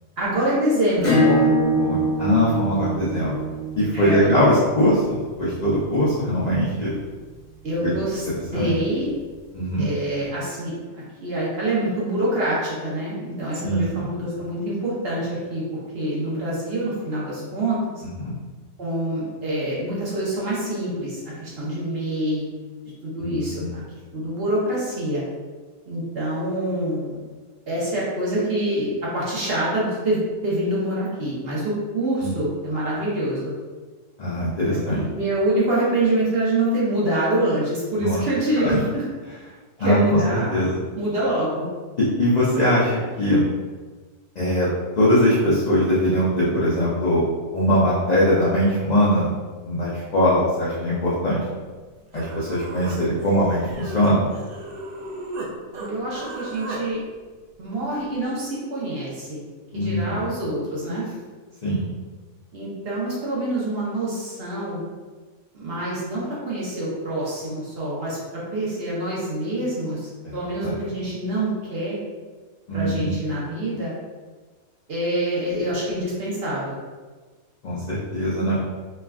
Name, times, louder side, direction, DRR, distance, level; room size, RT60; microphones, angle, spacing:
voice 1, 0.2-1.6 3.9-4.6 7.6-8.3 8.5-9.1 9.8-17.8 18.8-22.5 23.0-23.8 24.1-25.2 25.9-27.2 27.7-28.9 29.1-33.5 34.7-39.0 39.8-40.5 41.0-41.7 55.7-57.0 57.6-59.4 59.7-61.0 62.5-64.8 65.5-68.2 68.5-72.0 72.7-73.9 74.9-76.8, right 1 dB, 50° right, -7 dB, 0.9 m, -26 dB
Acoustic guitar / Strum, 1.0-6.3, equal, 45° left, 1.2 m, -24 dB
voice 2, 1.8-3.4 3.8-7.0 7.8-7.9 8.5-8.7 9.5-9.9 13.6-14.1 18.0-18.3 23.2-23.7 32.2-32.3 34.2-35.0 38.0-38.2 38.6-38.7 39.8-40.2 40.5-40.8 42.2-42.9 43.2-43.5 44.4-44.7 45.0-47.2 47.5-49.3 49.6-51.4 52.1-54.3 59.7-60.2 61.6-61.9 70.2-70.7 72.7-73.1 77.6-78.6, equal, 80° left, -8 dB, 0.3 m, -21 dB
Human voice, 51.8-51.9 52.1-55.5 55.7-56.8, right 2 dB, 70° right, 0.5 m, -35 dB
3.2 x 2.3 x 2.3 m, 1.4 s
omnidirectional pair, 1.5 m